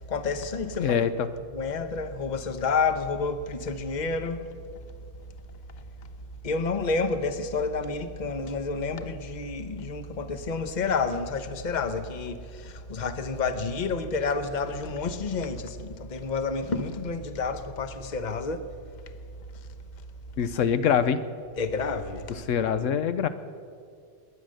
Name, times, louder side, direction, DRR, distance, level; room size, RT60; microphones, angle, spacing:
voice 1, 0.1-1.0 1.5-4.4 6.4-18.6 21.6-22.2, left 4 dB, 40° left, 1.0 m, -29 dB
voice 2, 0.8-1.3 20.4-21.2 22.5-23.3, left 8 dB, 85° left, 1.1 m, -24 dB
21.0 x 9.8 x 6.5 m
omnidirectional pair, 1.3 m